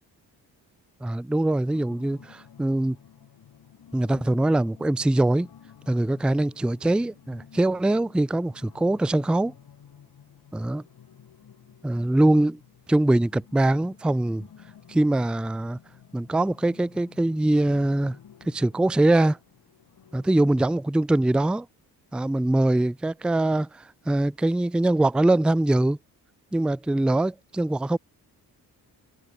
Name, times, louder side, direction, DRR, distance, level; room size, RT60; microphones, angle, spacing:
voice 1, 1.0-3.0 3.9-5.5 5.9-9.5 10.5-10.8 11.8-12.6 12.9-14.5 14.9-15.8 16.1-18.2 18.5-19.4 20.1-21.7 22.1-26.0 26.5-28.0, right 1 dB, ahead, 0.4 m, -23 dB
sound 1, 1.7-20.8, left 8 dB, 65° left, 4.8 m, -52 dB
cardioid pair, 70°, 40 cm